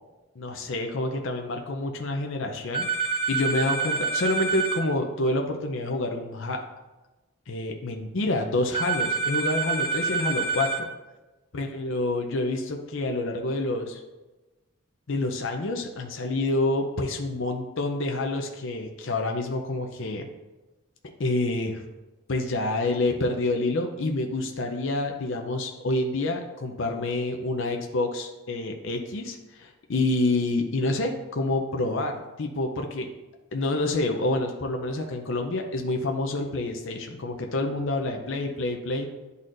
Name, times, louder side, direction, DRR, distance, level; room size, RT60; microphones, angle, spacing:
voice 1, 0.4-6.6 7.5-10.8 11.5-14.0 15.1-20.3 21.2-21.8 22.3-33.1 33.5-39.1, left 2 dB, 60° left, 3 dB, 0.6 m, -28 dB
sound 1, 2.7-4.8 8.7-10.8, right 4 dB, 25° right, 0.6 m, -27 dB
10.5 x 4.1 x 2.5 m, 1.1 s
head